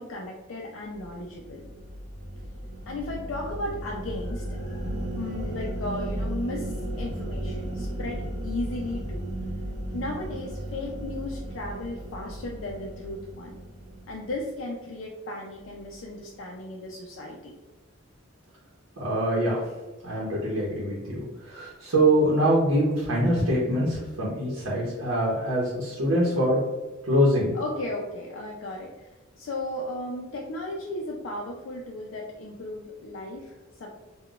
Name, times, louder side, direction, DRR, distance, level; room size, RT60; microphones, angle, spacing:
voice 1, 0.0-1.7 2.9-9.3 9.9-13.6 14.1-17.5 27.5-33.9, left 2 dB, 70° left, -1 dB, 0.4 m, -35 dB
sound 1, 0.9-14.5, right 1 dB, 25° right, 1.0 m, -35 dB
voice 2, 19.0-19.6 20.0-26.6 27.1-27.5, equal, 85° right, -4 dB, 0.8 m, -24 dB
3.8 x 2.2 x 2.3 m, 1.2 s
head